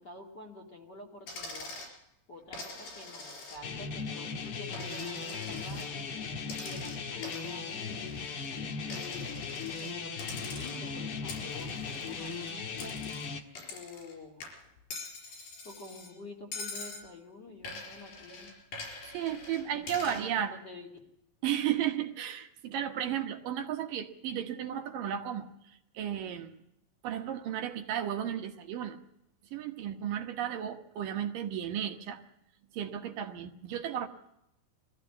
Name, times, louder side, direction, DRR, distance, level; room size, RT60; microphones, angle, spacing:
voice 1, 0.0-1.8 2.3-6.1 6.5-8.2 8.8-13.0 13.7-14.5 15.2-18.6 19.7-20.9, left 2 dB, 35° left, 1 dB, 2.3 m, -49 dB
Coin (dropping), 1.3-1.9 2.5-3.8 4.2-5.9 6.4-8.5 8.9-9.9 10.2-10.9 11.3-14.1 14.4-16.1 16.5-17.1 17.6-20.3, left 3 dB, 75° left, 5.8 m, -44 dB
sound 1, 3.6-13.4, left 5 dB, 50° left, 1.9 m, -38 dB
voice 2, 19.1-20.5 21.4-25.5 25.9-26.6 27.0-29.0 29.5-32.2 32.7-34.1, right 10 dB, 70° right, 6 dB, 2.8 m, -34 dB
21.5 x 15.0 x 8.5 m, 0.81 s
omnidirectional pair, 4.1 m